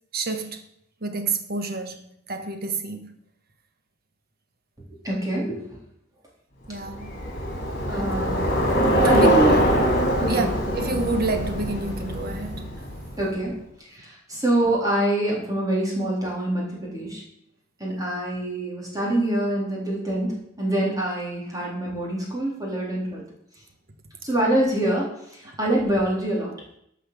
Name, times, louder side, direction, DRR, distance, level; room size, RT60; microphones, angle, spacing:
voice 1, 0.1-0.6 1.0-3.2 6.7-7.1 7.9-8.0 8.9-9.3 10.3-10.5 10.7-12.7 25.5-25.6, right 3 dB, 50° right, 1.3 m, -28 dB
voice 2, 5.0-5.6 7.9-8.5 9.1-9.5 10.2-10.4 13.2-17.2 17.8-23.2 24.2-26.5, right 1 dB, 20° right, 3.7 m, -25 dB
Bicycle, 6.8-13.3, right 1 dB, 55° left, 3.2 m, -23 dB
11.5 x 5.8 x 6.9 m
head